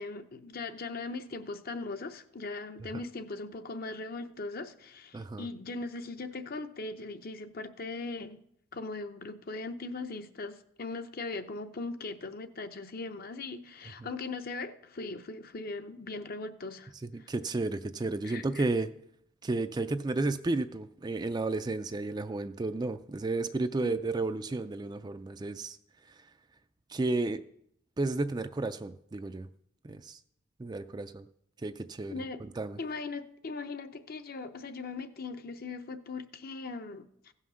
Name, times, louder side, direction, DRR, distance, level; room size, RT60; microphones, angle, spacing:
voice 1, 0.0-8.4 8.7-16.9 17.2-17.3 18.2-18.6 23.8-23.9 32.1-32.4 32.8-37.3, left 3 dB, 50° left, 0.7 m, -39 dB
voice 2, 5.1-5.5 17.0-18.9 19.4-25.8 26.9-27.4 28.0-29.5 29.8-30.2 30.6-31.3 31.6-32.1 32.6-32.8, right 2 dB, 20° right, 0.4 m, -32 dB
15.5 x 5.7 x 6.3 m
head